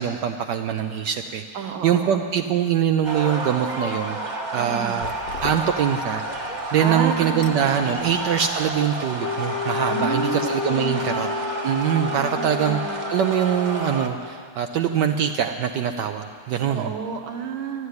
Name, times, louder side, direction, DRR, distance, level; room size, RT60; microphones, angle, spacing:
voice 1, 0.0-1.4 1.8-5.1 5.4-6.2 6.7-11.3 11.6-16.9, right 9 dB, 70° right, 6 dB, 1.1 m, -23 dB
voice 2, 1.5-2.4 4.5-5.0 6.8-8.3 9.9-11.3 12.0-13.1 16.7-17.9, right 6 dB, 85° right, 5 dB, 2.0 m, -31 dB
sound 1, 3.0-14.1, right 2 dB, 25° right, 1.1 m, -30 dB
sound 2, 4.9-8.9, left 7 dB, 65° left, 1.1 m, -41 dB
Wind instrument woodwind instrument, 9.2-14.3, left 7 dB, 85° left, 1.8 m, -31 dB
13.0 x 11.5 x 9.6 m, 2.2 s
omnidirectional pair, 2.1 m